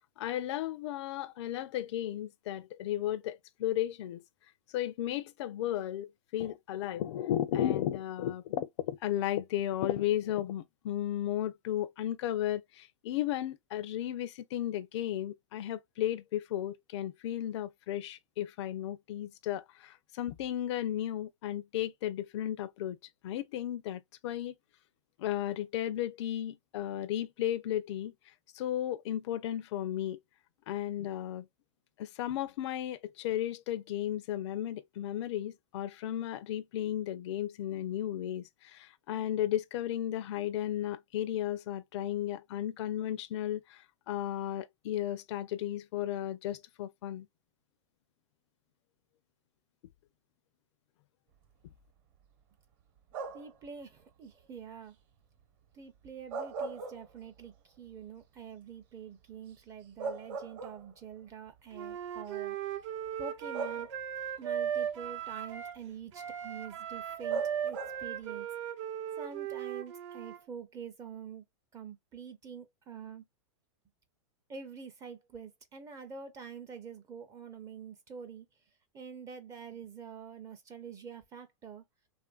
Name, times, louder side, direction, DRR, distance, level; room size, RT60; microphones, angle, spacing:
voice 1, 0.2-4.2 4.7-23.0 23.2-24.5 25.2-30.2 30.7-31.5 32.0-47.3, left 12 dB, 60° left, 0.4 m, -34 dB
sound 1, 53.1-53.6 56.1-57.5 57.9-58.0 59.5-59.6 60.0-61.1 62.2-62.3 63.5-64.3 67.3-68.2, right 4 dB, 40° right, 1.0 m, -39 dB
voice 2, 53.3-55.0 55.7-62.6 63.2-63.9 64.4-68.5 69.2-71.4 71.7-73.2 74.5-78.5 78.9-81.8, right 6 dB, 20° right, 0.5 m, -46 dB
Wind instrument woodwind instrument, 61.7-65.8 66.1-70.4, right 9 dB, 65° right, 0.7 m, -37 dB
2.9 x 2.5 x 2.2 m
supercardioid pair, 145°, 16 cm